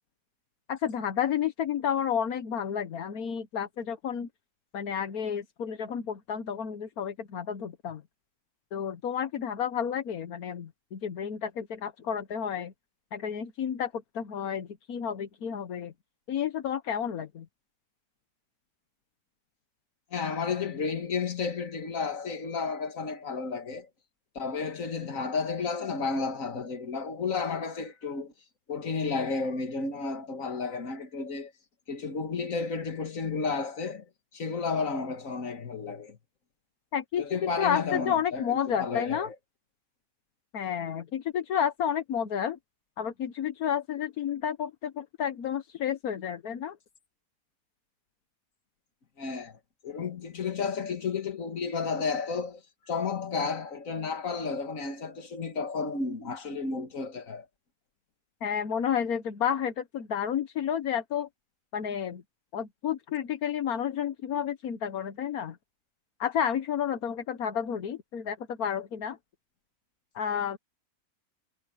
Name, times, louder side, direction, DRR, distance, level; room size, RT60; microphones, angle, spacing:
voice 1, 0.7-4.3 4.7-8.0 8.7-12.7 13.1-15.9 16.3-17.4 36.9-39.3 40.5-42.6 43.0-46.8 58.4-61.3 61.7-62.2 62.5-65.6 66.2-69.2 70.1-70.6, left 8 dB, 80° left, 1.6 m, -31 dB
voice 2, 20.1-23.9 24.4-28.3 28.7-31.5 31.9-34.1 34.3-36.2 37.2-39.3 49.2-49.6 49.8-57.5, left 4 dB, 65° left, 2.2 m, -32 dB
omnidirectional pair, 1.5 m